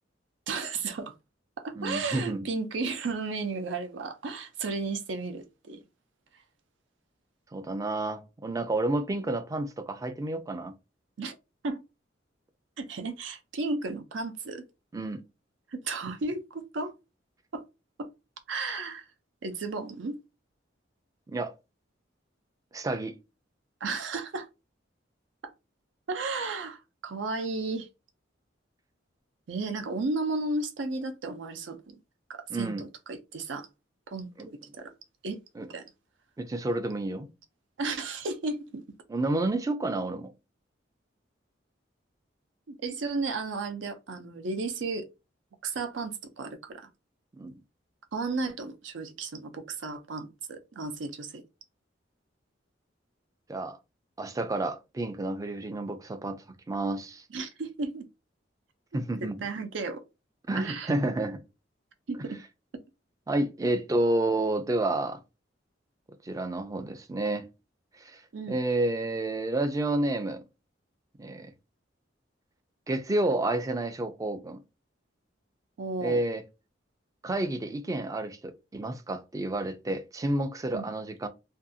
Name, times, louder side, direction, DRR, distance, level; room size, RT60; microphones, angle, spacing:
voice 1, 0.5-1.1 1.6-5.8 11.2-11.3 11.6-11.8 12.8-14.6 15.7-16.9 17.5-17.6 18.0-18.1 18.5-19.0 19.4-20.2 23.8-24.5 25.4-25.5 26.1-27.9 29.5-32.0 32.3-33.7 34.1-34.9 35.2-35.4 35.7-35.8 37.8-38.8 42.7-45.1 45.6-46.9 48.1-51.4 55.7-55.8 57.3-58.1 59.2-60.0 60.6-60.9 62.1-62.4 68.3-68.6 75.8-76.2 80.7-80.9, right 3 dB, 80° right, 0.5 m, -34 dB
voice 2, 1.8-2.5 7.5-10.8 14.9-15.2 21.3-21.5 22.7-23.2 32.5-32.8 34.4-34.5 35.6-35.7 36.4-37.3 39.1-40.3 47.4-47.5 53.5-53.8 54.2-57.2 58.9-59.4 60.5-61.4 63.3-65.2 66.2-67.5 68.0-68.2 68.5-70.4 71.2-71.5 72.9-74.6 76.0-76.4 77.2-81.3, right 2 dB, 20° right, 0.3 m, -30 dB
2.6 x 2.3 x 2.6 m
head